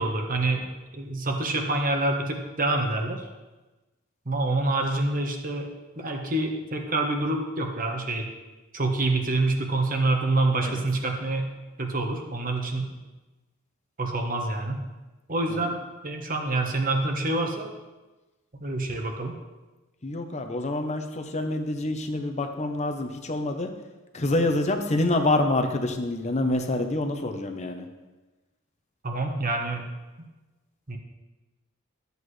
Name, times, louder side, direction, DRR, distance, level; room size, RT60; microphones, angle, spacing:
voice 1, 0.0-3.3 4.3-8.3 8.7-11.5 11.8-12.9 14.0-14.8 15.3-15.8 16.0-17.7 18.6-19.3 29.0-29.9 30.9-31.0, right 2 dB, 40° right, 3 dB, 1.2 m, -27 dB
voice 2, 20.0-23.7 24.1-27.9, left 2 dB, 30° left, 6 dB, 0.8 m, -27 dB
13.0 x 8.1 x 3.2 m, 1.2 s
head